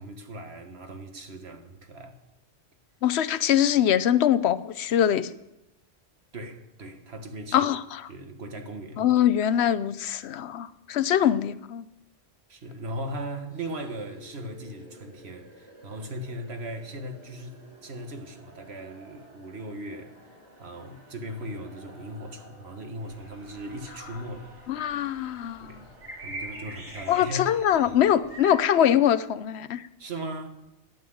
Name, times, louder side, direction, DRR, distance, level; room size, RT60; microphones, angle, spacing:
voice 1, 0.0-2.2 6.3-7.7 8.1-9.1 12.5-20.2 20.6-24.5 25.6-25.9 26.2-27.5 27.9-28.0 30.0-30.5, right 1 dB, 75° right, 1.8 m, -38 dB
voice 2, 3.0-5.3 7.5-8.0 9.0-11.9 24.7-25.8 27.1-29.9, left 10 dB, 80° left, 0.9 m, -23 dB
sound 1, 13.5-29.4, right 1 dB, 45° right, 4.7 m, -53 dB
sound 2, 23.0-28.6, right 1 dB, 10° right, 3.2 m, -44 dB
10.5 x 9.4 x 7.8 m
omnidirectional pair, 1.1 m